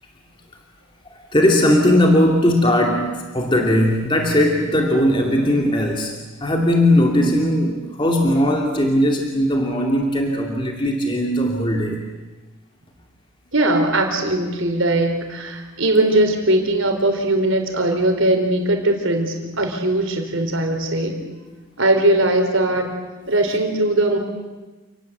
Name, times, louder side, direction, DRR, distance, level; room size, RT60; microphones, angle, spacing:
voice 1, 1.1-6.1 6.4-12.0, left 1 dB, 25° left, 1 dB, 2.5 m, -18 dB
voice 2, 13.5-21.2 21.8-22.9 23.3-24.2, right 1 dB, 65° right, 4 dB, 4.2 m, -19 dB
29.0 x 19.5 x 8.1 m, 1.2 s
head